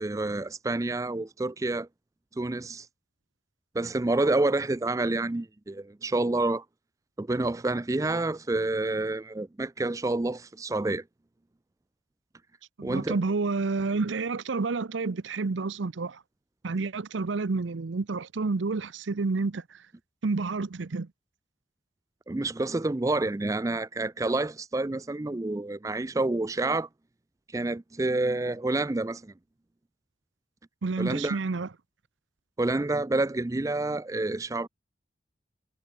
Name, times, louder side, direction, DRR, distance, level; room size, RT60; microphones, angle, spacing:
voice 1, 0.0-1.9 2.4-2.9 3.7-6.6 7.2-11.0 12.8-13.2 22.3-26.9 27.5-29.3 31.0-31.4 32.6-34.7, right 2 dB, 15° right, 0.4 m, -28 dB
voice 2, 12.8-16.2 16.6-19.8 20.2-21.1 30.8-31.7, right 3 dB, 85° right, 0.7 m, -29 dB
head